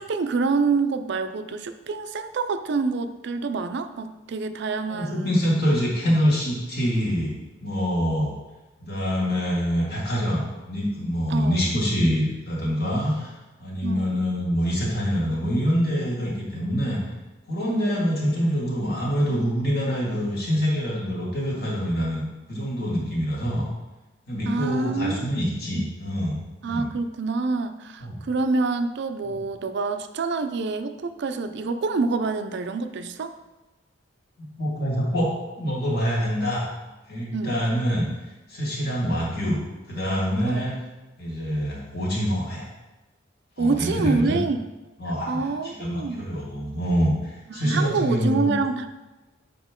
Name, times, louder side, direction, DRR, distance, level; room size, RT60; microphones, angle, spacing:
voice 1, 0.0-5.3 11.3-11.6 13.8-14.2 17.7-18.0 24.4-25.3 25.8-25.9 26.6-33.3 37.3-37.6 40.5-40.6 43.6-44.6 45.3-46.2 47.5-48.9, right 4 dB, 65° right, 9 dB, 0.4 m, -27 dB
voice 2, 4.9-8.3 8.8-13.3 13.6-17.0 17.5-22.2 22.5-23.7 24.3-26.9 28.0-28.2 34.4-35.3 35.6-36.7 37.1-38.1 38.5-39.6 39.9-40.7 41.2-42.6 43.6-44.4 45.0-48.6, equal, 55° left, -4 dB, 2.1 m, -25 dB
7.3 x 4.4 x 3.7 m, 1.1 s
head